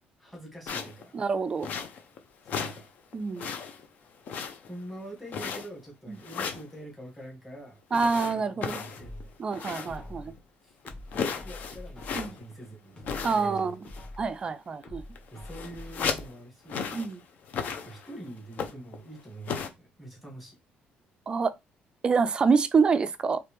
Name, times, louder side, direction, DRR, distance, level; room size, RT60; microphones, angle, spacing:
voice 1, 0.2-1.2 2.4-2.9 4.7-7.8 8.3-9.5 9.8-10.8 11.1-13.0 13.3-13.7 15.3-17.0 17.7-20.6, right 1 dB, 5° left, 1.9 m, -45 dB
sound 1, 0.7-1.0 1.6-2.2 2.5-2.9 3.1-3.9 4.3-4.8 5.3-5.8 6.2-6.7 7.9-10.1 10.4-10.5 10.9-12.5 13.0-13.6 13.9-14.2 14.8-14.9 15.2-16.3 16.7-17.1 17.5-18.1 18.5-19.0 19.5-19.7, left 6 dB, 50° left, 0.7 m, -35 dB
voice 2, 1.1-1.7 3.1-3.5 6.1-6.2 7.9-8.8 9.4-10.3 12.2-12.3 13.2-13.8 14.2-15.0 16.9-17.2 21.3-21.5 22.0-23.4, right 5 dB, 25° right, 0.3 m, -26 dB
sound 2, 9.0-10.4 10.8-12.5 12.8-14.4 14.8-16.5 16.8-16.9, left 1 dB, 25° left, 1.8 m, -45 dB
4.5 x 3.2 x 3.4 m
cardioid pair, 165°, 4 cm